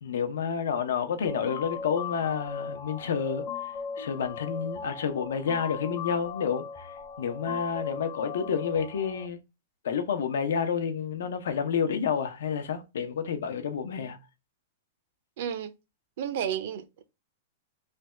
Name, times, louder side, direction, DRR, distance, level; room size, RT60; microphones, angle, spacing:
voice 1, 0.0-3.4 4.0-6.9 7.2-9.4 9.8-14.2, left 7 dB, 85° left, 0.8 m, -29 dB
sound 1, 1.3-9.3, left 6 dB, 30° left, 0.7 m, -38 dB
voice 2, 15.4-15.7 16.2-17.0, right 9 dB, 55° right, 0.5 m, -32 dB
3.3 x 2.3 x 4.2 m
supercardioid pair, 170°, 0 cm